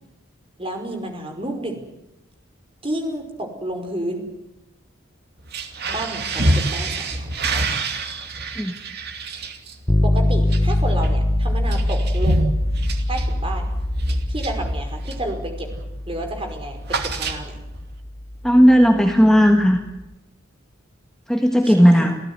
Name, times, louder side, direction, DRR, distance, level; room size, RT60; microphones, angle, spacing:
voice 1, 0.6-1.8 2.8-4.3 5.9-7.6 10.0-12.5 13.1-13.7 14.3-15.7 16.1-17.5 21.6-22.1, right 1 dB, 25° right, 4 dB, 5.2 m, -30 dB
sound 1, 5.4-15.3 15.7-16.0 16.2-17.8, right 1 dB, 50° right, 2.7 m, -27 dB
sound 2, 9.9-19.8, left 1 dB, 20° left, 0.9 m, -24 dB
voice 2, 18.4-19.8 21.3-22.1, equal, 5° left, 3 dB, 1.6 m, -14 dB
28.0 x 15.5 x 9.7 m, 0.94 s
head